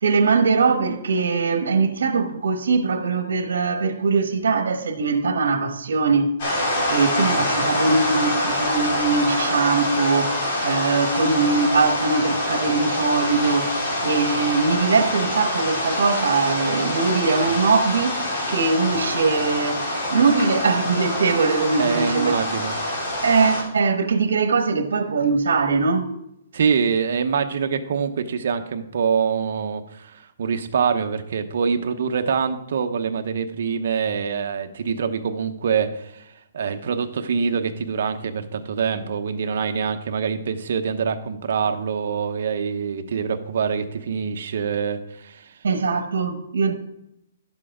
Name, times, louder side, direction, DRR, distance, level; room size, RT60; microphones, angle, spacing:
voice 1, 0.0-18.2 18.5-19.8 20.1-22.3 23.2-26.1 45.6-46.7, right 4 dB, 85° right, 1.1 m, -21 dB
sound 1, 6.4-23.6, left 1 dB, 45° left, 3.0 m, -25 dB
voice 2, 21.8-22.7 26.5-45.5, right 6 dB, 55° right, 0.9 m, -25 dB
11.5 x 7.6 x 3.7 m
hypercardioid pair, 170°, 0 cm